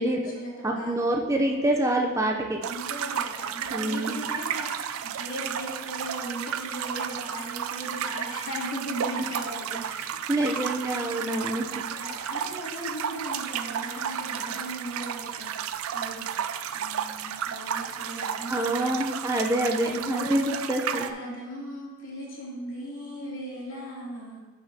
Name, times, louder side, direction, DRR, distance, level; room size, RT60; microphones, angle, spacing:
voice 1, 0.0-1.1 2.7-9.9 11.9-16.4 16.7-18.9 19.7-24.4, equal, 65° left, -6 dB, 2.7 m, -38 dB
voice 2, 0.6-2.6 3.7-4.2 9.9-11.7 18.5-21.1, right 1 dB, 15° right, 0 dB, 0.5 m, -26 dB
sound 1, 2.6-21.1, right 8 dB, 90° right, 0.4 m, -33 dB
11.0 x 6.2 x 2.8 m, 1.2 s
head